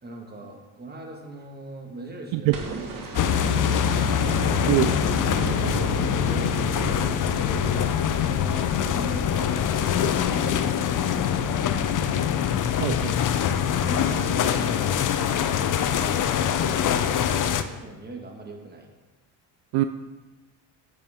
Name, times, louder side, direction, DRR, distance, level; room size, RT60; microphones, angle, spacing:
voice 1, 0.0-2.9 3.2-4.1 5.3-11.8 13.8-15.0 15.8-18.9, right 2 dB, 20° right, 1 dB, 1.7 m, -41 dB
sound 1, 2.5-8.7 10.2-10.3, right 4 dB, 45° right, 1.8 m, -34 dB
sound 2, 3.1-17.6, left 8 dB, 45° left, 0.6 m, -24 dB
voice 2, 12.8-13.3 19.7-19.8, right 16 dB, 75° right, 9 dB, 0.5 m, -23 dB
8.2 x 6.7 x 3.6 m, 1.2 s
supercardioid pair, 85°, 46 cm